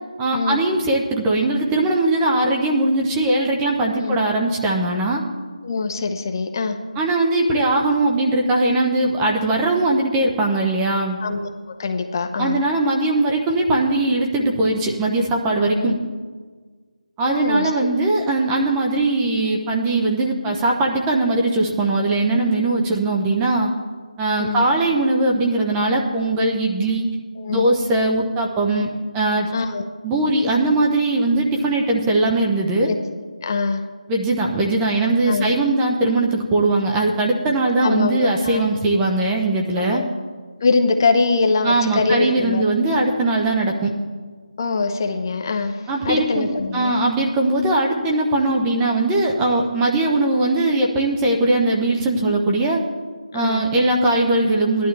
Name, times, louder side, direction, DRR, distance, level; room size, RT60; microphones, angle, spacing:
voice 1, 0.2-5.2 7.0-11.2 12.4-15.9 17.2-23.7 24.2-27.0 27.5-28.9 29.1-29.5 30.0-32.9 34.1-40.0 41.6-43.9 45.9-46.5 46.7-52.8 53.3-54.9, right 2 dB, 10° right, -1 dB, 0.8 m, -20 dB
voice 2, 5.6-6.8 11.2-12.6 15.8-16.0 17.2-17.7 24.4-24.7 27.4-27.7 29.5-29.8 32.9-33.0 33.4-33.8 35.3-35.5 37.8-38.6 39.8-40.1 40.6-42.6 44.6-46.9 53.3-53.7, left 4 dB, 30° left, 5 dB, 0.8 m, -23 dB
16.5 x 11.0 x 3.4 m, 1.5 s
figure-of-eight pair, 165°, 4 cm